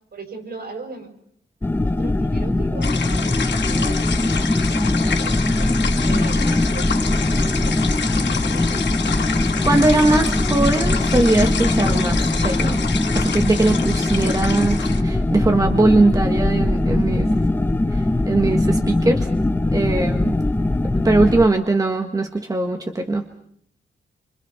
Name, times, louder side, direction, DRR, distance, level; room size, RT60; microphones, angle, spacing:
voice 1, 0.1-1.1 1.8-5.4 6.0-8.8, right 3 dB, 55° right, 6 dB, 5.5 m, -39 dB
sound 1, 1.6-21.5, left 2 dB, 10° left, 1.1 m, -21 dB
sound 2, 2.8-15.0, left 6 dB, 65° left, 3.0 m, -28 dB
voice 2, 9.6-12.8 13.1-17.4 17.9-19.3 19.7-20.3 21.0-23.3, right 2 dB, 20° right, 4 dB, 1.6 m, -20 dB
28.0 x 26.0 x 5.8 m, 0.69 s
wide cardioid pair, 135°, 19 cm